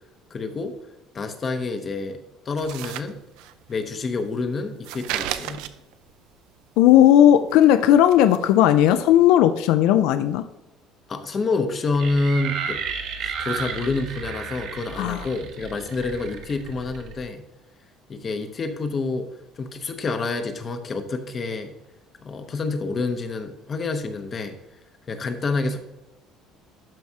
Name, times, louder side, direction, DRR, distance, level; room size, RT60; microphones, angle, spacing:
voice 1, 0.3-0.7 1.1-2.2 2.5-3.2 3.7-5.6 11.1-12.8 13.2-17.4 18.1-19.3 19.6-21.7 22.2-24.6 25.1-25.8, left 3 dB, 25° left, 8 dB, 0.7 m, -28 dB
sound 1, 2.6-3.7 4.0-6.1 6.5-7.8 8.1-8.5 8.8-8.9, right 12 dB, 85° right, 0.4 m, -34 dB
voice 2, 6.8-10.4 15.0-15.3, left 11 dB, 70° left, 10 dB, 0.4 m, -16 dB
sound 2, 11.9-17.2, right 6 dB, 55° right, 1.0 m, -33 dB
12.0 x 4.6 x 2.8 m, 0.94 s
cardioid pair, 170°, 0 cm